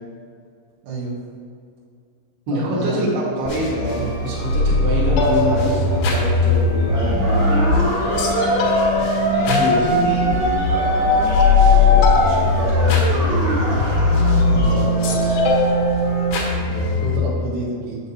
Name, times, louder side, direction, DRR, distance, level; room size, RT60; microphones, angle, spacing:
voice 1, 0.8-1.2 2.5-3.2 14.5-15.0 16.6-18.0, right 3 dB, 85° right, -7 dB, 4.1 m, -29 dB
voice 2, 2.5-8.6 9.3-13.8 14.5-15.4, equal, 65° right, -6 dB, 3.3 m, -27 dB
sound 1, 3.5-17.2, left 3 dB, 80° left, 3.5 m, -19 dB
sound 2, 3.8-16.3, left 2 dB, 55° left, 1.1 m, -31 dB
sound 3, 7.2-14.4, right 1 dB, 50° right, 1.6 m, -22 dB
8.7 x 7.4 x 2.8 m, 2.3 s
omnidirectional pair, 5.4 m